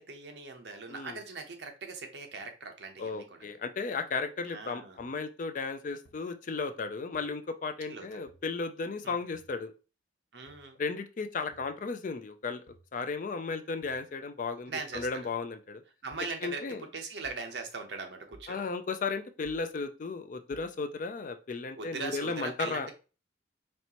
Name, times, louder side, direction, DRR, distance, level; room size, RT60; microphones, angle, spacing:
voice 1, 0.0-3.5 4.5-5.0 7.9-8.2 9.0-9.2 10.3-10.8 14.7-15.3 16.0-18.6 21.7-22.9, right 4 dB, 60° right, 5 dB, 0.8 m, -40 dB
voice 2, 3.0-9.7 10.8-12.6 12.9-15.8 16.4-16.8 18.5-22.9, left 4 dB, 40° left, 9 dB, 0.4 m, -35 dB
sound 1, 5.0-5.1 6.0-6.1 7.1-7.2 8.3-8.4 9.3-9.5 10.5-10.7 11.5-11.7 12.7-12.9 13.8-14.0 14.9-15.2 16.1-16.3 17.2-17.5 18.3-18.5 19.4-19.7 20.5-20.7, right 1 dB, 90° left, 1.2 m, -57 dB
4.3 x 3.2 x 2.9 m, 0.33 s
head